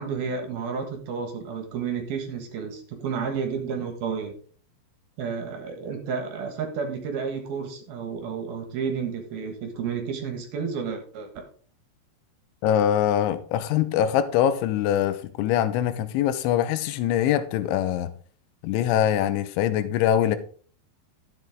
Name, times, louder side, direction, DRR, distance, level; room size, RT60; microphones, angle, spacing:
voice 1, 0.0-4.3 5.2-11.4, right 6 dB, 65° right, 2.9 m, -31 dB
voice 2, 12.6-18.1 18.6-20.4, left 10 dB, 80° left, 3.2 m, -23 dB
12.5 x 7.8 x 3.6 m
omnidirectional pair, 5.4 m